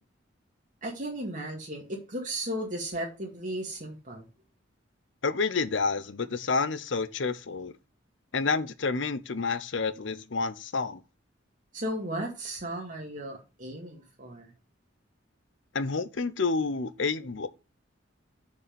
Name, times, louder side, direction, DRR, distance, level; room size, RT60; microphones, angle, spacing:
voice 1, 0.8-4.2 11.7-14.5, right 1 dB, 45° right, 2.0 m, -35 dB
voice 2, 5.2-7.7 8.3-11.0 15.7-17.5, left 4 dB, 70° left, 0.8 m, -29 dB
7.0 x 5.3 x 5.2 m
head